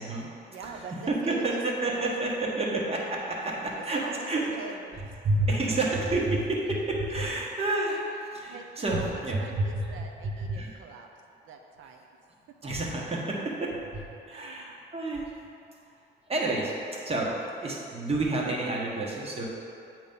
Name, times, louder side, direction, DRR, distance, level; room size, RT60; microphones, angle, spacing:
voice 1, 0.5-2.2 3.4-5.3 5.7-5.8 7.2-7.3 8.5-11.1 11.4-12.2 14.3-14.8, right 4 dB, 85° right, 3 dB, 0.7 m, -44 dB
voice 2, 1.1-4.4 5.2-9.9 10.2-10.8 12.6-15.3 16.3-19.5, right 2 dB, 30° right, -3 dB, 1.3 m, -29 dB
8.1 x 3.1 x 5.3 m, 2.6 s
cardioid pair, 90°, 20 cm